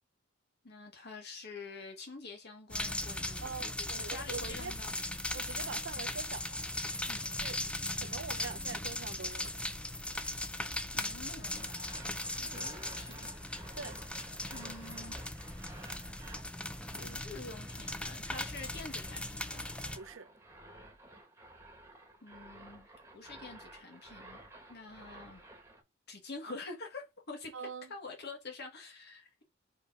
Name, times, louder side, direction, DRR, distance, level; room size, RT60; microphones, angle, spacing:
voice 1, 0.6-4.9 7.1-7.3 10.9-11.7 12.4-13.3 14.5-15.2 16.8-19.6 22.2-22.9 23.1-24.4 24.7-25.4 26.1-29.4, left 3 dB, 55° left, 1.6 m, -47 dB
sound 1, 2.7-20.0, left 1 dB, 5° left, 0.5 m, -38 dB
voice 2, 3.4-4.7 5.3-6.6 7.4-7.6 8.0-9.5 12.4-12.6 13.7-14.0 20.0-20.3 27.5-27.9, right 5 dB, 70° right, 0.7 m, -44 dB
sound 2, 11.4-25.8, right 2 dB, 15° right, 1.5 m, -54 dB
5.1 x 4.2 x 5.3 m
head